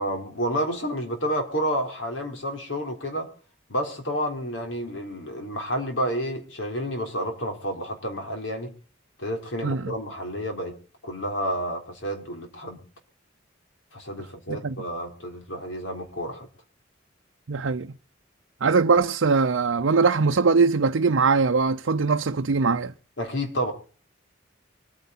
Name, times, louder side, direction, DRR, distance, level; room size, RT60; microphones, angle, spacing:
voice 1, 0.0-3.3 3.7-8.7 9.2-10.8 11.0-12.8 13.9-16.5 23.2-23.7, equal, 75° left, 3.9 m, -30 dB
voice 2, 17.5-17.9 18.6-22.9, right 4 dB, 80° right, 0.6 m, -21 dB
24.0 x 9.5 x 4.1 m
head